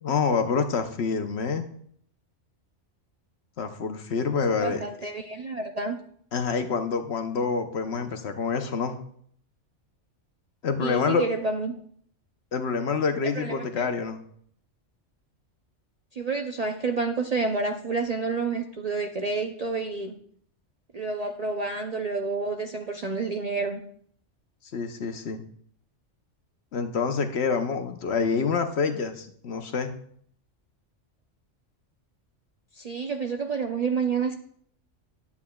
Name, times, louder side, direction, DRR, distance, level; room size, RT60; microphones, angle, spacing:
voice 1, 0.0-1.7 3.6-4.8 6.3-9.0 10.6-11.2 12.5-14.2 24.7-25.4 26.7-29.9, left 5 dB, 65° left, 7 dB, 1.0 m, -27 dB
voice 2, 4.6-6.0 10.8-11.7 13.4-13.9 16.1-20.2 20.9-23.8 32.7-34.4, right 4 dB, 50° right, 3 dB, 0.5 m, -29 dB
10.5 x 8.3 x 2.3 m, 0.63 s
omnidirectional pair, 1.3 m